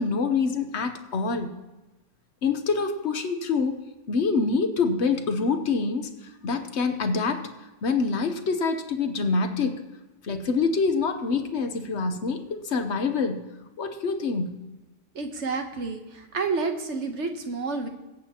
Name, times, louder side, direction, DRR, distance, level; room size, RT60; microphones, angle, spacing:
voice 1, 0.0-1.6 2.4-3.8 4.1-6.1 6.4-7.4 7.8-9.8 10.2-13.4 13.8-14.6, left 4 dB, 50° left, 7 dB, 1.0 m, -26 dB
voice 2, 15.1-17.9, right 4 dB, 50° right, 5 dB, 1.2 m, -29 dB
23.0 x 8.3 x 2.9 m, 1.1 s
omnidirectional pair, 1.8 m